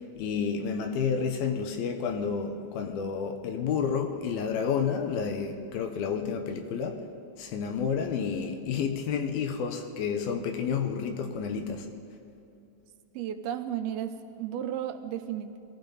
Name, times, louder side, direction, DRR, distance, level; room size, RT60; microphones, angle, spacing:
voice 1, 0.0-7.0 7.4-11.9, left 6 dB, 75° left, 5 dB, 2.8 m, -30 dB
voice 2, 13.1-15.6, right 10 dB, 85° right, 8 dB, 2.7 m, -34 dB
22.0 x 15.0 x 4.0 m, 2.8 s
omnidirectional pair, 4.4 m